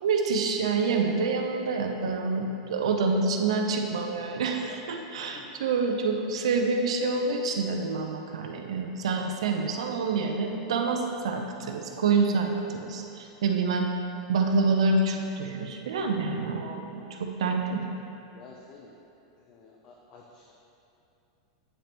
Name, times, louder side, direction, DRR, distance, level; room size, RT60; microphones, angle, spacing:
voice 1, 0.0-13.9 14.3-17.8, right 4 dB, 85° right, 3 dB, 0.7 m, -27 dB
voice 2, 5.3-5.7 18.3-18.9 19.5-20.5, left 6 dB, 35° left, -1 dB, 0.6 m, -50 dB
8.8 x 5.1 x 3.0 m, 2.7 s
supercardioid pair, 140°, 3 cm